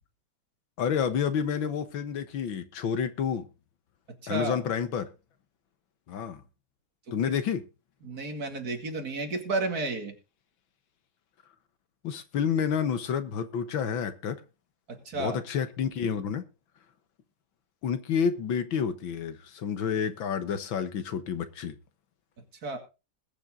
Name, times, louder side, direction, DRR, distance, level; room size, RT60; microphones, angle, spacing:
voice 1, 0.8-3.5 4.3-5.1 6.1-6.4 7.1-7.7 12.0-14.4 15.1-16.4 17.8-21.8, left 7 dB, 90° left, 2.0 m, -29 dB
voice 2, 4.2-4.6 7.2-7.3 8.0-10.1 14.9-15.4 22.6-22.8, right 2 dB, 50° right, 2.7 m, -32 dB
20.5 x 7.4 x 3.8 m
omnidirectional pair, 2.1 m